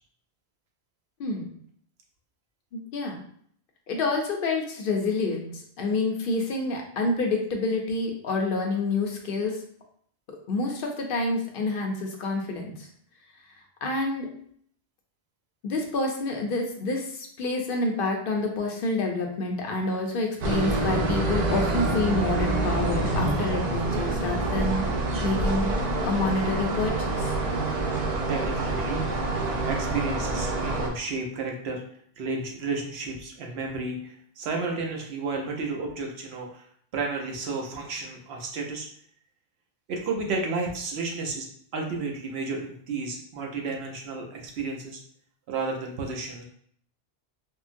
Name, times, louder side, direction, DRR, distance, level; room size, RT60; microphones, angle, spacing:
voice 1, 1.2-1.5 2.7-3.2 3.9-9.6 10.5-12.9 13.8-14.3 15.6-24.8 25.2-25.8 26.0-27.3, left 3 dB, 60° left, 2 dB, 0.7 m, -28 dB
sound 1, 20.4-30.9, right 2 dB, 55° right, 0.5 m, -27 dB
voice 2, 28.3-31.8 32.2-36.6 36.9-38.9 39.9-41.5 41.7-45.0 45.5-46.4, right 3 dB, 75° right, 1 dB, 0.9 m, -32 dB
3.7 x 2.0 x 2.5 m, 0.63 s
omnidirectional pair, 1.1 m